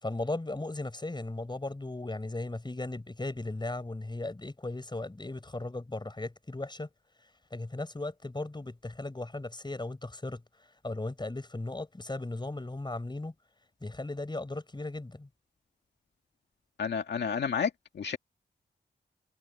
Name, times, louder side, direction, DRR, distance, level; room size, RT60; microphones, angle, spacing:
voice 1, 0.0-6.9 7.5-10.4 10.8-13.3 13.8-15.3, left 2 dB, 25° left, 5.8 m, -37 dB
voice 2, 16.8-18.2, left 6 dB, 80° left, 2.3 m, -31 dB
cardioid pair, 55°, 17 cm